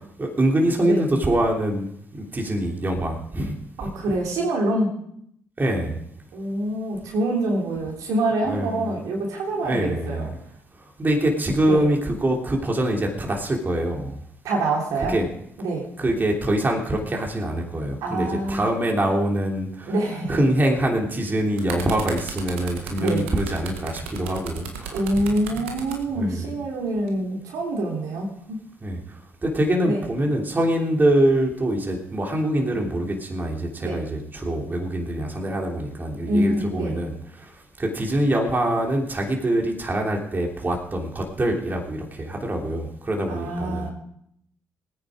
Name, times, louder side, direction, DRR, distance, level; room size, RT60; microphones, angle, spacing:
voice 1, 0.2-1.9 2.3-3.5 3.8-3.9 5.6-6.0 8.5-8.9 9.6-10.3 11.0-14.2 15.1-15.3 16.0-19.9 20.3-25.2 25.5-25.6 26.2-26.5 28.8-29.0 29.4-37.5 37.8-43.9, right 1 dB, 30° right, 1 dB, 3.1 m, -24 dB
voice 2, 3.8-5.0 6.3-10.3 11.6-11.9 14.4-15.2 15.6-15.9 18.0-18.7 19.9-20.4 23.0-23.3 24.9-28.6 29.8-30.0 33.8-34.0 36.3-37.0 43.3-43.9, right 1 dB, 65° right, -1 dB, 3.3 m, -25 dB
sound 1, 21.3-26.0 26.9-27.1, right 6 dB, 85° right, 1.7 m, -35 dB
19.0 x 9.7 x 5.0 m, 0.72 s
hypercardioid pair, 45°, 6 cm